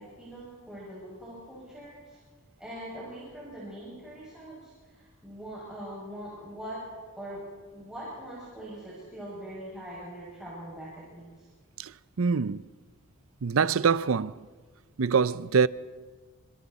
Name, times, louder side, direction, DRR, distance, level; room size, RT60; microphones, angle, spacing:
voice 1, 0.0-2.2 2.6-6.8 7.2-7.4 7.7-11.5, right 1 dB, 5° right, 6.5 m, -42 dB
voice 2, 12.2-12.6 13.4-14.4 15.0-15.7, right 5 dB, 85° right, 0.6 m, -24 dB
27.5 x 26.5 x 4.2 m
head